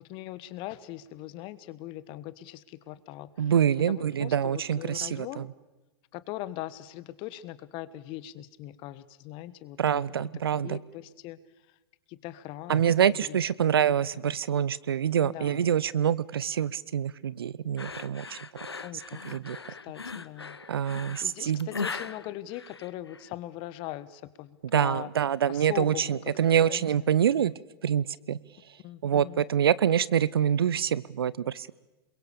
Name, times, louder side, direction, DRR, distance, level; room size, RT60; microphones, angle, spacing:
voice 1, 0.0-3.5 3.9-5.5 6.1-10.0 10.6-11.8 12.1-13.8 14.1-14.3 15.2-15.7 18.8-19.2 19.7-20.6 21.2-25.1 25.5-27.5 28.8-29.4, left 14 dB, 40° left, 16 dB, 1.3 m, -41 dB
voice 2, 3.4-5.4 9.8-10.8 12.7-18.4 19.3-19.6 20.7-21.7 24.7-27.5 27.8-28.4 29.0-31.7, right 9 dB, 70° right, 21 dB, 0.7 m, -26 dB
sound 1, 17.8-23.3, left 4 dB, 85° left, 0.8 m, -39 dB
28.0 x 22.5 x 6.8 m, 1.1 s
figure-of-eight pair, 100°, 13 cm